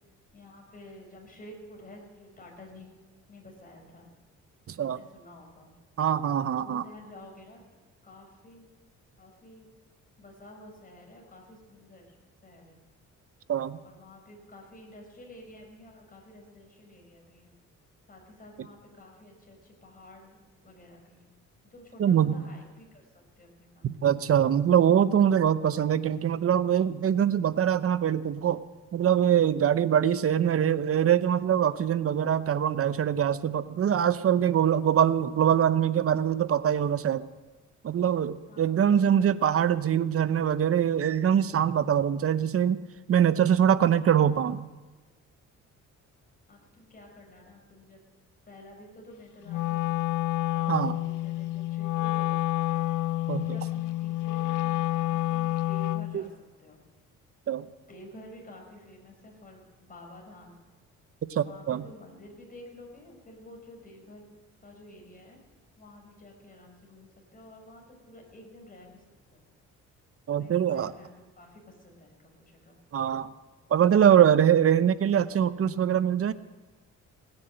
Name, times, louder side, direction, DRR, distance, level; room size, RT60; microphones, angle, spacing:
voice 1, 0.3-2.9 3.3-4.1 4.8-5.7 6.6-7.6 8.0-8.7 9.2-9.7 10.2-12.2 12.4-12.8 13.8-17.6 18.1-21.3 21.7-23.1 23.4-24.0 38.5-38.9 46.5-48.1 48.5-52.8 53.4-56.8 57.9-60.6 61.4-64.3 64.6-65.4 65.8-69.0 69.3-69.4 70.3-72.8, left 1 dB, 30° left, 0 dB, 5.3 m, -50 dB
voice 2, 4.7-5.0 6.0-6.8 13.5-13.8 22.0-22.3 24.0-28.6 28.9-37.3 37.8-42.8 43.1-44.7 50.7-51.0 53.3-53.5 56.1-56.2 57.5-57.7 61.3-61.8 70.3-70.9 72.9-73.3 73.7-76.3, right 9 dB, 50° right, 14 dB, 0.8 m, -23 dB
Wind instrument woodwind instrument, 49.5-56.2, left 16 dB, 85° left, 0.5 m, -29 dB
18.0 x 9.7 x 7.8 m, 1.2 s
cardioid pair, 90°, 30 cm